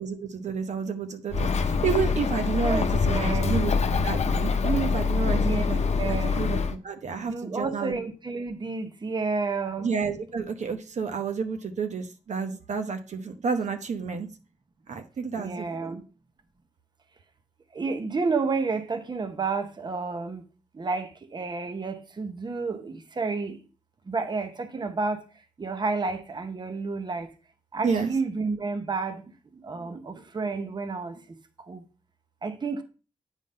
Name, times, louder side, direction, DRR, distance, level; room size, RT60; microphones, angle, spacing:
voice 1, 0.0-3.7 4.0-8.0 9.8-14.3 14.9-16.0 27.8-28.1, right 5 dB, 75° right, 0.8 m, -30 dB
Bird, 1.3-6.7, left 5 dB, 65° left, 0.7 m, -25 dB
voice 2, 2.6-3.6 5.3-5.6 6.0-6.5 7.2-9.9 15.4-16.0 17.7-20.5 20.7-23.6 24.1-25.3 25.6-27.3 27.7-29.2 29.5-31.8 32.4-32.8, right 4 dB, 35° right, 0.8 m, -31 dB
9.0 x 3.8 x 5.3 m
wide cardioid pair, 130°, 12 cm